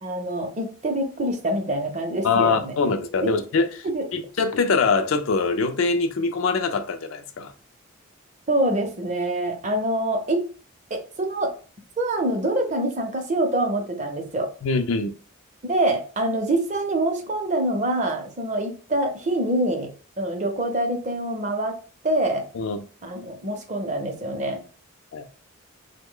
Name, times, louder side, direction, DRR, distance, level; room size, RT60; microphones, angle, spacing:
voice 1, 0.0-2.7 3.2-3.3 3.8-4.0 8.5-10.4 10.9-11.5 12.0-14.5 15.6-19.9 20.2-21.8 22.0-22.4 23.0-24.6, right 1 dB, 35° right, 0.6 m, -25 dB
voice 2, 2.2-3.9 4.1-7.5 14.6-15.1 22.5-22.8 25.1-25.2, left 4 dB, 65° left, 0.4 m, -23 dB
3.1 x 2.1 x 3.6 m
head